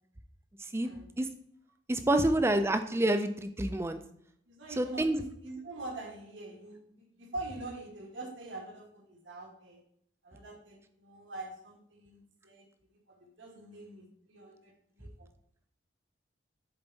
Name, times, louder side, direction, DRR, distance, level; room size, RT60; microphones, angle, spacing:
voice 1, 1.9-4.0 4.8-5.2, right 1 dB, 15° right, 9 dB, 0.4 m, -28 dB
voice 2, 4.5-9.8 10.2-12.7 13.2-15.3, right 2 dB, 85° right, 0 dB, 1.8 m, -44 dB
7.0 x 4.5 x 4.0 m, 0.69 s
head